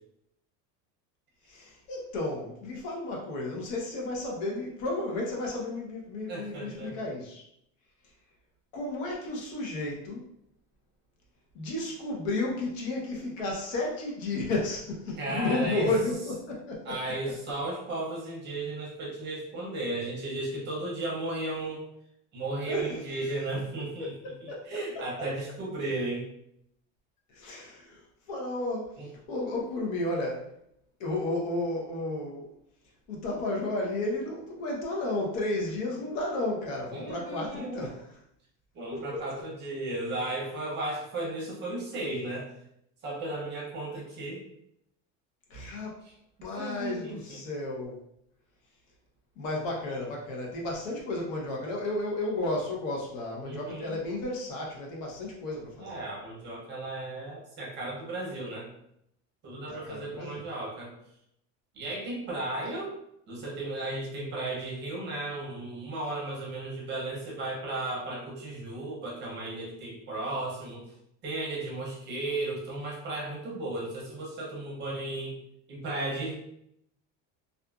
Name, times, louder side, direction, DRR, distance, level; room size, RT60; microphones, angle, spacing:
voice 1, 1.5-7.4 8.7-10.3 11.5-17.2 22.7-23.0 24.5-24.7 24.9-25.3 27.3-30.5 31.0-32.5 33.1-38.1 38.9-39.2 45.5-46.0 46.4-48.0 49.4-56.0 59.7-60.5, left 2 dB, 80° left, -1 dB, 0.9 m, -33 dB
voice 2, 6.3-6.9 15.2-15.9 16.9-21.9 22.3-24.1 24.4-26.3 29.0-29.1 36.9-37.9 38.7-42.5 43.0-44.4 46.6-47.4 53.5-54.0 55.8-58.7 59.4-60.9 61.7-62.9 63.3-70.8 71.2-75.4 75.7-76.3, right 2 dB, 30° right, -3 dB, 0.6 m, -35 dB
2.5 x 2.4 x 2.3 m, 0.75 s
cardioid pair, 170°, 38 cm